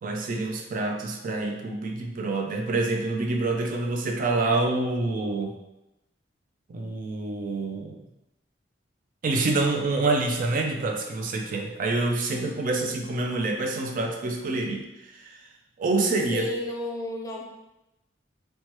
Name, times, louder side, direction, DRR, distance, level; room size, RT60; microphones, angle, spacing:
voice 1, 0.0-5.6 6.7-8.0 9.2-15.4 15.8-16.5, right 2 dB, 45° right, 2 dB, 0.4 m, -27 dB
voice 2, 16.3-17.4, left 2 dB, 20° left, -1 dB, 0.4 m, -32 dB
3.0 x 2.1 x 2.9 m, 0.93 s
head